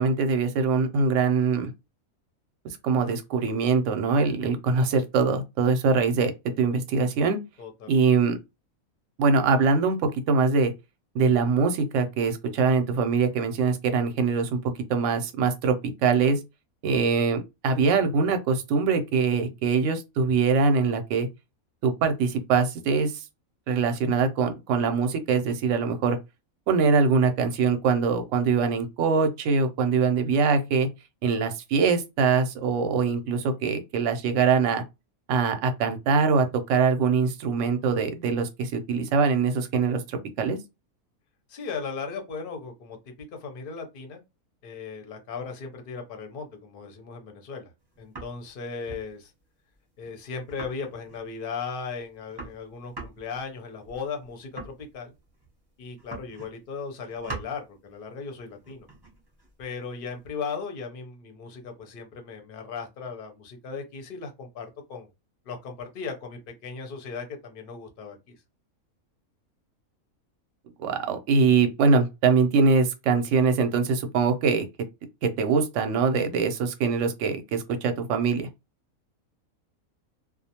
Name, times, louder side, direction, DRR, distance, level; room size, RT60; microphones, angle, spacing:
voice 1, 0.0-1.7 2.6-6.3 6.6-7.4 7.9-8.4 9.2-10.7 11.1-15.8 16.0-16.4 16.8-21.3 21.8-23.2 23.7-26.2 26.7-30.9 31.2-34.8 35.3-40.6 70.8-74.7 75.2-78.5, right 5 dB, 65° right, 0.8 m, -23 dB
voice 2, 7.6-8.0 41.5-44.2 44.6-47.7 48.0-49.3 50.0-55.1 55.8-58.9 59.6-65.1 65.4-68.2, left 5 dB, 50° left, 0.7 m, -37 dB
sound 1, 47.8-48.5 48.9-49.1 49.4-49.5 49.7-49.8 50.0-50.1 50.5-51.3 51.7-51.8 52.0-55.6 56.0-56.7 56.9-57.6 58.5-60.4, right 3 dB, 25° right, 0.6 m, -43 dB
2.4 x 2.1 x 2.8 m
omnidirectional pair, 1.5 m